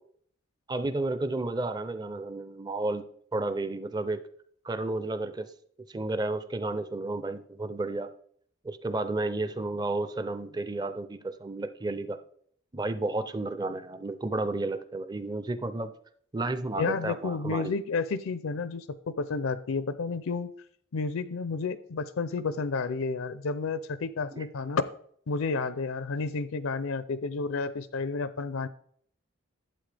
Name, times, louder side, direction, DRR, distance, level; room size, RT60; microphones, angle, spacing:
voice 1, 0.7-3.0 3.3-4.2 4.6-5.5 5.9-8.1 8.6-12.2 12.7-15.9 16.3-17.7 24.3-24.4, right 2 dB, 20° right, 11 dB, 0.5 m, -32 dB
voice 2, 16.8-20.5 20.9-24.8 25.3-28.7, left 4 dB, 80° left, 14 dB, 0.5 m, -31 dB
11.5 x 7.9 x 3.4 m, 0.62 s
head